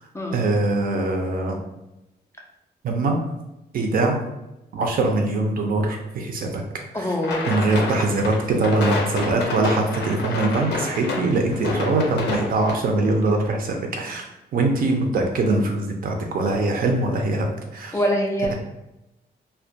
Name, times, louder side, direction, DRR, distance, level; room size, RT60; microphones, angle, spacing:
voice 1, 0.3-1.6 2.8-3.2 3.7-4.2 4.7-6.6 6.9-7.2 7.5-14.2 14.5-18.0, right 2 dB, 55° right, 2 dB, 0.5 m, -22 dB
voice 2, 6.9-7.6 17.9-18.5, equal, 15° left, 0 dB, 0.3 m, -24 dB
sound 1, 7.2-12.7, left 3 dB, 80° left, 0.5 m, -29 dB
2.2 x 2.1 x 2.7 m, 0.94 s
cardioid pair, 105°, 17 cm